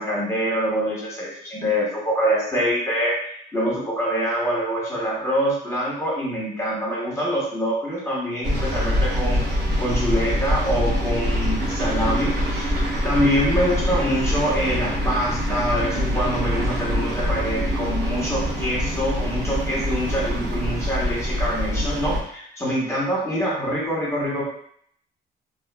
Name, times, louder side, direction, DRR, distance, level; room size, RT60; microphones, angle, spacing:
voice 1, 0.0-9.4 9.8-12.7 13.0-24.4, equal, 15° left, -6 dB, 1.0 m, -25 dB
sound 1, 8.4-22.2, equal, 60° right, 0.9 m, -24 dB
2.6 x 2.3 x 2.3 m, 0.65 s
cardioid pair, 90°, 20 cm